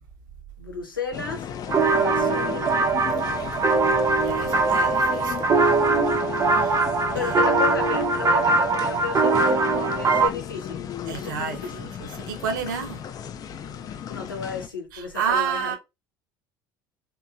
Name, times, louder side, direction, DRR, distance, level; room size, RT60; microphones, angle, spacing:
voice 1, 0.6-1.5 1.9-2.8 7.1-11.7 14.1-15.8, left 5 dB, 85° left, 0.7 m, -34 dB
sound 1, 1.1-14.7, left 8 dB, 35° left, 0.3 m, -35 dB
sound 2, 1.7-10.3, right 3 dB, 30° right, 0.5 m, -21 dB
voice 2, 3.2-3.7 4.2-5.4 6.5-6.8 7.1-7.8 11.1-13.0 14.9-15.8, right 7 dB, 70° right, 0.7 m, -31 dB
2.9 x 2.2 x 2.4 m
figure-of-eight pair, 60°, 11 cm